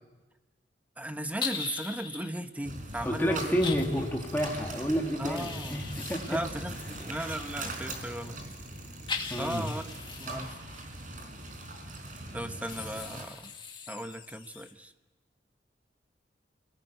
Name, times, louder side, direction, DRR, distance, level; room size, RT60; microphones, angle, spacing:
voice 1, 1.0-3.6 3.9-4.0 5.2-5.8 6.3-8.4 9.4-9.9 10.2-10.6 12.3-13.5 13.9-14.9, right 1 dB, 10° right, 8 dB, 1.0 m, -36 dB
sound 1, 1.4-2.3 3.6-3.9 5.3-7.7 9.1-10.8 12.7-14.7, left 5 dB, 30° left, 2.0 m, -40 dB
sound 2, 2.6-13.2, right 2 dB, 50° right, 4.4 m, -41 dB
voice 2, 3.0-6.4 9.3-9.7, equal, 10° left, 0 dB, 2.0 m, -30 dB
27.0 x 18.5 x 9.2 m, 1.2 s
head